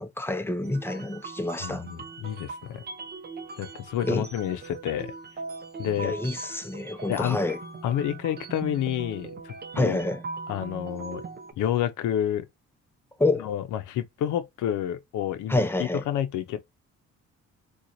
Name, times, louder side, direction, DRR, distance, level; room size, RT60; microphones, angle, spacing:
voice 1, 0.0-1.8 4.0-4.2 6.0-7.6 9.8-10.2 13.2-13.5 15.5-16.0, left 2 dB, 10° left, 0.5 m, -27 dB
sound 1, 0.6-11.5, right 4 dB, 35° right, 0.7 m, -40 dB
voice 2, 1.6-2.8 3.6-5.1 5.8-6.1 7.1-7.4 7.8-10.1 10.5-11.2 11.6-12.5 13.4-15.6 16.1-16.6, left 10 dB, 80° left, 0.6 m, -29 dB
3.8 x 2.3 x 2.8 m
cardioid pair, 90°, 30 cm